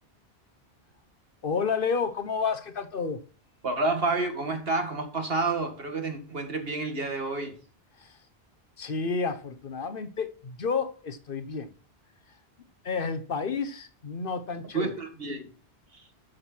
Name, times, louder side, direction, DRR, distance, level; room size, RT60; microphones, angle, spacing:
voice 1, 1.4-3.2 8.0-8.2 8.8-11.7 12.8-14.9, left 5 dB, 60° left, 1.1 m, -30 dB
voice 2, 3.6-7.6 14.7-15.5, right 3 dB, 70° right, 2.4 m, -29 dB
13.0 x 6.7 x 4.5 m
omnidirectional pair, 1.0 m